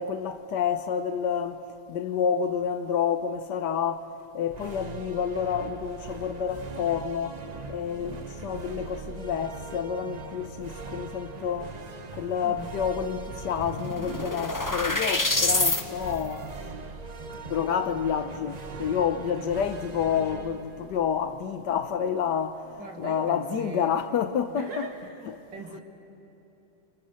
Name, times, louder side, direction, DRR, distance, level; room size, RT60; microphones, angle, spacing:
voice 1, 0.0-1.6 1.9-11.8 12.1-16.6 17.4-24.9 25.3-25.4, left 7 dB, 70° left, 1.4 m, -29 dB
sound 1, 4.5-21.9, right 4 dB, 40° right, 0.6 m, -41 dB
sound 2, 13.0-13.1 13.3-15.8, left 2 dB, 20° left, 0.5 m, -27 dB
voice 2, 22.8-23.9 24.5-25.2 25.5-25.8, right 3 dB, 80° right, 2.9 m, -40 dB
30.0 x 25.5 x 6.5 m
omnidirectional pair, 1.9 m